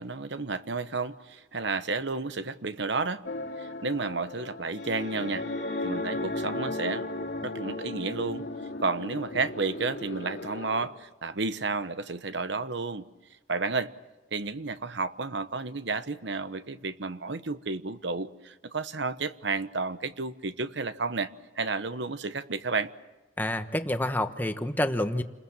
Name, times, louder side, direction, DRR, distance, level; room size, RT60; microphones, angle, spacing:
voice 1, 0.0-3.2 3.6-5.4 5.8-7.1 7.4-8.5 8.8-13.1 13.5-13.9 14.3-21.3 21.6-22.9, right 4 dB, 70° right, 1.1 m, -31 dB
sound 1, 3.3-10.9, left 2 dB, 75° left, 2.4 m, -35 dB
voice 2, 23.4-25.2, left 1 dB, 10° left, 1.1 m, -28 dB
29.0 x 21.0 x 7.4 m
head